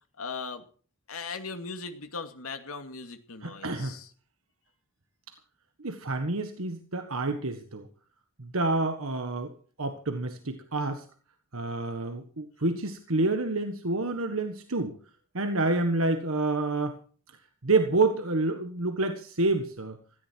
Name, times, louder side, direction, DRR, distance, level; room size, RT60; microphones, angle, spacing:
voice 1, 0.2-0.6 1.1-4.1, left 4 dB, 85° left, 8 dB, 2.4 m, -38 dB
voice 2, 3.4-4.0 5.8-7.9 8.4-9.5 9.8-11.0 11.5-15.0 15.3-17.0 17.6-20.0, right 2 dB, 80° right, 7 dB, 1.6 m, -28 dB
17.0 x 14.5 x 4.6 m, 0.41 s
head